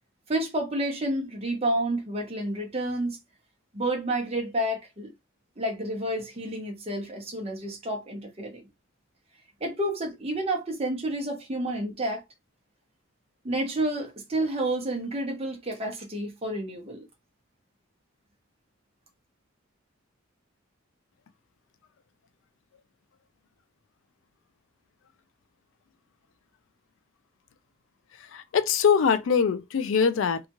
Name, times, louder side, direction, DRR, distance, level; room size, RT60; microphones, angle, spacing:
voice 1, 0.3-3.2 3.7-5.1 5.6-8.7 9.6-12.2 13.4-17.0, right 1 dB, 30° right, 0.8 m, -30 dB
voice 2, 28.3-30.4, left 6 dB, 70° left, 0.4 m, -23 dB
2.8 x 2.3 x 2.8 m
head